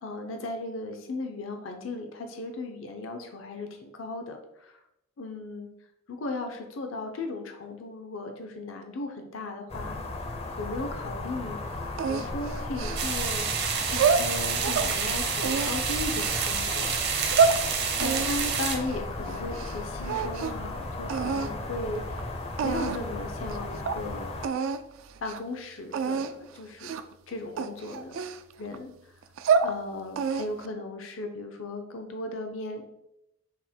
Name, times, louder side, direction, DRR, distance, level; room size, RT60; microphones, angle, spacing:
voice 1, 0.0-4.8 5.2-5.7 6.1-11.6 12.1-13.5 13.9-17.0 18.0-22.3 22.6-24.3 25.2-28.2 28.6-29.1 29.6-32.9, left 2 dB, 75° left, 4 dB, 0.6 m, -36 dB
sound 1, 9.7-24.5, left 2 dB, 30° left, 0.5 m, -35 dB
sound 2, 12.0-13.3 13.8-14.9 15.4-16.5 17.0-17.6 18.0-19.8 20.0-20.7 21.1-21.5 22.2-22.3 22.6-23.1 23.5-23.6 23.9-24.0 24.4-24.8 25.2-25.4 25.9-26.3 26.8-27.1 27.6-28.8 29.2-29.7 30.2-30.7, right 5 dB, 75° right, 0.3 m, -27 dB
sound 3, 13.0-18.8, right 6 dB, 55° right, 0.7 m, -29 dB
5.9 x 2.1 x 4.2 m, 0.83 s
head